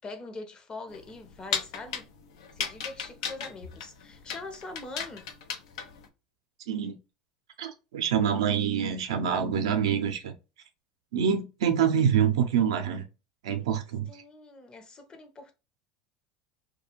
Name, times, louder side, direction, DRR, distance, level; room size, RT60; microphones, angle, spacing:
voice 1, 0.0-2.1 2.5-5.3 14.0-15.5, left 3 dB, 30° left, 0.7 m, -43 dB
sound 1, 0.9-6.1, left 7 dB, 75° left, 0.5 m, -36 dB
voice 2, 7.6-10.3 11.1-13.0 13.4-14.2, right 8 dB, 80° right, 0.5 m, -26 dB
2.3 x 2.3 x 2.9 m
hypercardioid pair, 85°, 3 cm